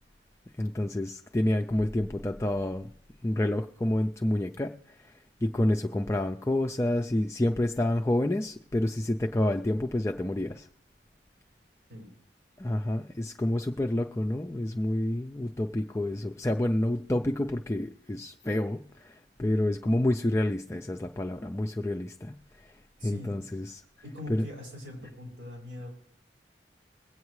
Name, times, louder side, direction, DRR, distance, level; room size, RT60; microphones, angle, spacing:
voice 1, 0.6-2.9 3.2-10.7 12.6-23.8 24.3-24.5, left 1 dB, 15° left, 4 dB, 0.4 m, -29 dB
voice 2, 23.0-23.6 24.0-25.9, left 1 dB, 90° right, -1 dB, 5.2 m, -42 dB
21.5 x 8.3 x 3.2 m, 0.70 s
head